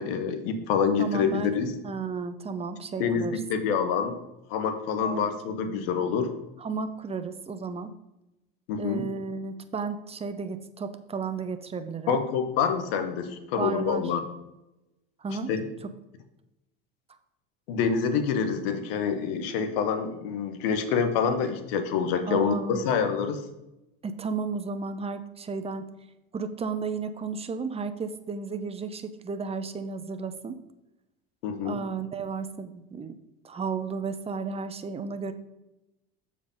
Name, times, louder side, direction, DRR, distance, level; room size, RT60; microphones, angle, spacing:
voice 1, 0.0-1.7 3.0-4.2 4.5-6.3 8.7-9.0 12.1-14.3 15.5-15.7 17.7-23.4 31.4-31.8, left 6 dB, 80° left, 9 dB, 1.2 m, -27 dB
voice 2, 1.0-3.4 5.0-5.3 5.7-5.8 6.6-7.9 8.8-12.2 13.6-14.1 15.2-15.5 22.3-22.9 24.0-25.8 26.3-30.6 31.6-33.2 33.4-35.3, right 5 dB, 20° right, 9 dB, 0.7 m, -33 dB
7.0 x 5.0 x 5.3 m, 0.94 s
supercardioid pair, 90°, 29 cm